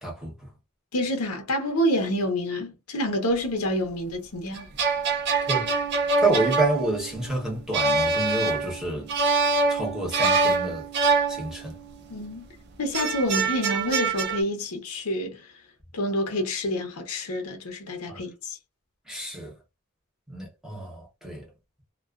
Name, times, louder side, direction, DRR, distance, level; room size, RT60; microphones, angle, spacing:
voice 1, 0.0-0.5 5.5-5.7 6.2-9.1 9.7-10.9 11.3-11.8 18.1-18.2 19.1-19.5 20.3-21.5, right 2 dB, ahead, 0.9 m, -29 dB
voice 2, 0.9-4.7 12.1-12.5 12.8-15.5 15.9-18.6, equal, 90° left, 0.7 m, -28 dB
sound 1, 4.6-12.0 12.9-14.4, right 4 dB, 50° right, 0.4 m, -25 dB
2.3 x 2.3 x 2.3 m
head